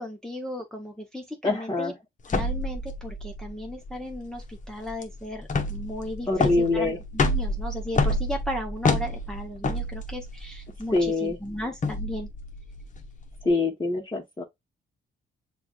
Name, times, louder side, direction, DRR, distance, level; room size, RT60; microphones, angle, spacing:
voice 1, 0.0-1.9 2.3-12.3, left 1 dB, 5° left, 0.8 m, -36 dB
voice 2, 1.4-2.0 6.3-7.0 10.9-11.4 13.4-14.4, left 3 dB, 20° left, 1.2 m, -24 dB
sound 1, 2.3-13.5, left 2 dB, 40° left, 0.9 m, -29 dB
6.9 x 2.4 x 2.4 m
cardioid pair, 90°, 20 cm